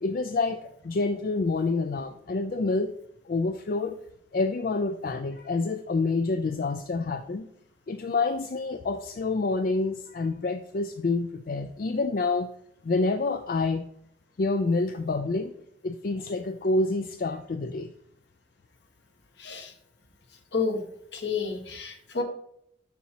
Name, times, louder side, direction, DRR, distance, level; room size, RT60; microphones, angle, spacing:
voice 1, 0.0-2.9 3.3-4.0 4.3-7.5 7.9-12.5 12.8-13.8 14.4-15.6 15.8-17.9, left 3 dB, 50° left, 8 dB, 0.4 m, -27 dB
voice 2, 19.4-19.7 20.5-20.8 21.1-22.2, left 4 dB, 70° left, 4 dB, 1.3 m, -30 dB
7.2 x 5.9 x 2.8 m, 0.73 s
head